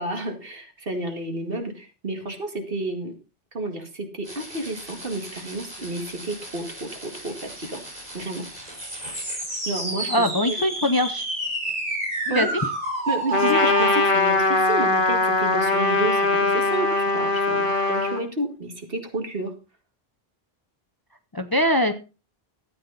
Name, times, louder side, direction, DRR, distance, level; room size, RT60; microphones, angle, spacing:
voice 1, 0.0-3.1 3.5-7.8 8.1-8.5 9.7-10.7 12.3-12.5 13.1-19.5, right 2 dB, 60° right, 4 dB, 2.3 m, -31 dB
sound 1, 4.3-14.0, right 2 dB, 40° right, 4.6 m, -31 dB
voice 2, 10.1-11.3 12.3-12.5 21.3-21.9, left 1 dB, 25° left, 9 dB, 0.7 m, -22 dB
Trumpet, 13.3-18.2, left 3 dB, 55° left, 1.5 m, -21 dB
13.5 x 8.7 x 4.0 m, 0.32 s
omnidirectional pair, 1.1 m